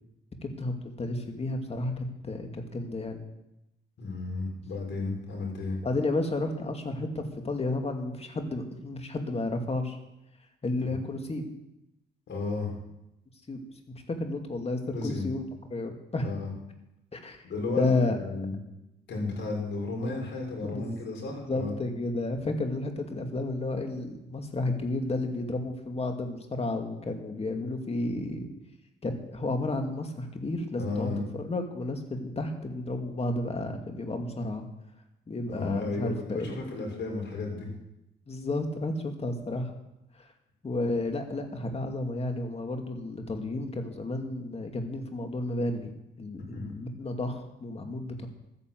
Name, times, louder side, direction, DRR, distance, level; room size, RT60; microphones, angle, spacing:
voice 1, 0.4-3.2 5.8-10.0 10.6-11.5 13.5-13.6 14.1-15.4 15.7-16.3 17.1-17.4 17.8-18.2 20.6-20.8 21.4-28.5 29.0-34.6 35.3-36.6 38.3-39.7 40.2-40.3 40.6-48.3, left 2 dB, 30° left, 4 dB, 2.5 m, -32 dB
voice 2, 4.0-5.8 10.9-11.0 12.3-12.7 14.9-15.3 16.2-16.5 17.4-18.6 19.1-21.8 30.8-31.2 35.5-37.7 46.5-46.8, left 3 dB, 65° left, 0 dB, 5.8 m, -33 dB
13.0 x 9.9 x 7.7 m, 0.89 s
cardioid pair, 90°, 20 cm